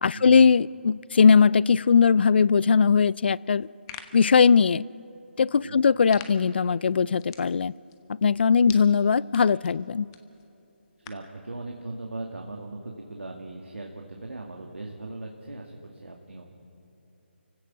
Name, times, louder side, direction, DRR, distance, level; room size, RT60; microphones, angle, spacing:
voice 1, 0.0-3.7 4.1-4.8 5.4-7.7 8.2-10.1, left 6 dB, 60° left, 23 dB, 0.4 m, -20 dB
sound 1, 3.5-11.4, left 9 dB, 20° left, 1.2 m, -49 dB
voice 2, 11.0-16.4, right 2 dB, 90° right, 1 dB, 2.2 m, -39 dB
29.0 x 16.5 x 6.2 m, 2.8 s
figure-of-eight pair, 155°, 6 cm